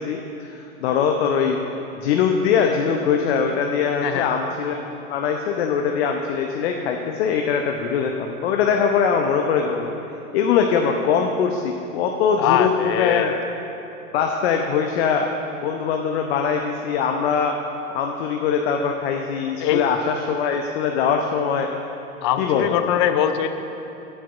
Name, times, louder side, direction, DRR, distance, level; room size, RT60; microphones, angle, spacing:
voice 1, 0.0-1.6 2.0-9.9 10.3-12.7 13.0-13.3 14.1-15.3 15.6-17.5 17.9-21.7 22.4-22.7, left 6 dB, 45° left, 3 dB, 0.9 m, -22 dB
voice 2, 12.4-13.4 19.6-19.8 22.2-23.5, left 10 dB, 20° left, 9 dB, 0.3 m, -21 dB
8.8 x 8.5 x 7.2 m, 2.9 s
figure-of-eight pair, 105°, 42 cm